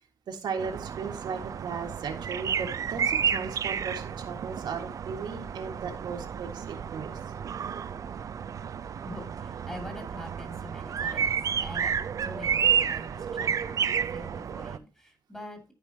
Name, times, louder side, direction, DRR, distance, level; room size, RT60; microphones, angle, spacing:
voice 1, 0.3-7.2, right 5 dB, 80° right, 2 dB, 1.7 m, -36 dB
sound 1, 0.6-14.8, right 7 dB, 50° right, 0.5 m, -31 dB
voice 2, 9.0-11.9 12.2-15.6, left 1 dB, 10° left, 3 dB, 2.4 m, -44 dB
13.5 x 4.9 x 2.8 m, 0.30 s
wide cardioid pair, 145°, 7 cm